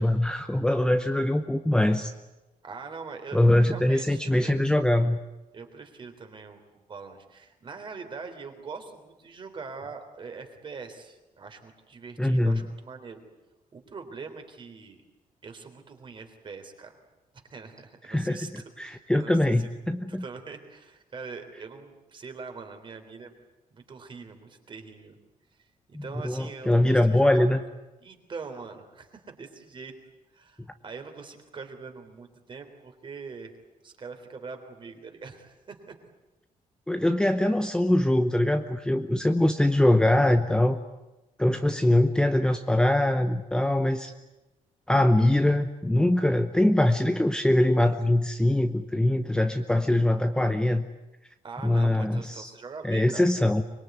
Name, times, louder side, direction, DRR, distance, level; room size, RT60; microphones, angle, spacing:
voice 1, 0.0-2.1 3.3-5.2 12.2-12.6 18.1-20.2 25.9-27.6 36.9-40.8 41.4-44.1 44.9-50.9 51.6-52.5 52.8-53.6, left 1 dB, 5° left, 7 dB, 0.9 m, -23 dB
voice 2, 2.6-4.6 5.5-13.2 13.7-15.0 15.4-16.9 17.5-19.7 20.1-23.4 23.7-25.2 25.6-25.7 26.0-27.5 28.0-29.9 30.3-33.5 33.8-36.0 51.4-53.3, right 4 dB, 35° right, 6 dB, 3.6 m, -43 dB
25.0 x 22.0 x 9.4 m, 1.0 s
cardioid pair, 150°, 14 cm